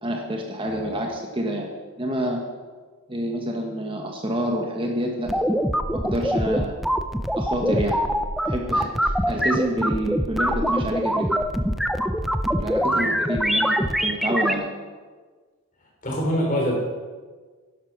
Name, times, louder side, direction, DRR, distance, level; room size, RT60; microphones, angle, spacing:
voice 1, 0.0-1.7 2.0-2.4 3.1-5.6 5.9-6.8 7.4-8.0 8.4-11.3 12.5-14.7, right 1 dB, 25° right, 1 dB, 1.3 m, -28 dB
sound 1, 5.3-14.5, equal, ahead, 0.5 m, -23 dB
voice 2, 12.9-13.2 16.0-16.7, equal, 35° left, -2 dB, 4.1 m, -25 dB
11.5 x 11.0 x 6.0 m, 1.4 s
head